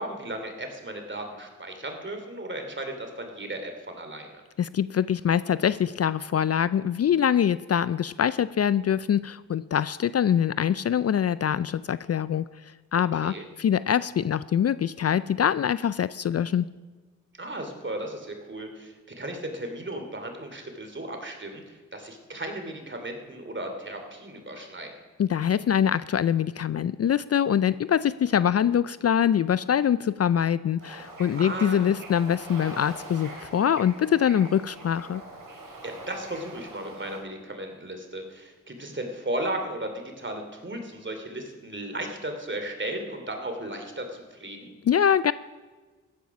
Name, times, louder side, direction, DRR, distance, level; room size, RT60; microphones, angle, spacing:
voice 1, 0.0-4.4 13.2-13.5 17.4-25.0 31.4-31.9 35.8-44.7, right 1 dB, 35° right, 5 dB, 2.8 m, -35 dB
voice 2, 4.6-12.4 12.9-16.7 25.2-35.2 44.9-45.3, left 9 dB, 50° left, 17 dB, 0.4 m, -24 dB
Bird / Ocean, 30.8-37.2, right 2 dB, 85° right, 2.9 m, -43 dB
15.0 x 10.5 x 5.9 m, 1.3 s
cardioid pair, 45°, 32 cm